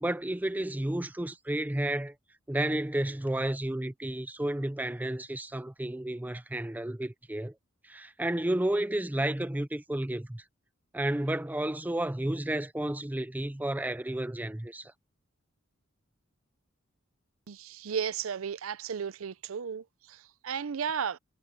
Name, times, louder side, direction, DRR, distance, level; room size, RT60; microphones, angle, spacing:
voice 1, 0.0-2.1 2.5-7.5 7.8-10.4 10.9-14.9, right 1 dB, 10° right, 0.4 m, -31 dB
voice 2, 17.5-21.2, right 7 dB, 75° right, 0.5 m, -34 dB
head